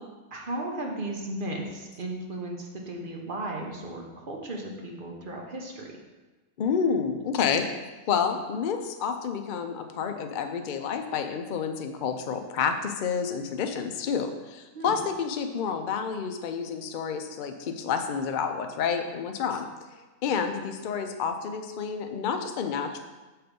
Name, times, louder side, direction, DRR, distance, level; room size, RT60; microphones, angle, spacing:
voice 1, 0.3-5.9 14.7-15.0, right 1 dB, 40° right, 0 dB, 1.0 m, -35 dB
voice 2, 6.6-7.7 8.1-19.6 20.2-23.0, left 6 dB, 90° left, 6 dB, 0.4 m, -29 dB
6.4 x 4.5 x 5.2 m, 1.2 s
omnidirectional pair, 1.6 m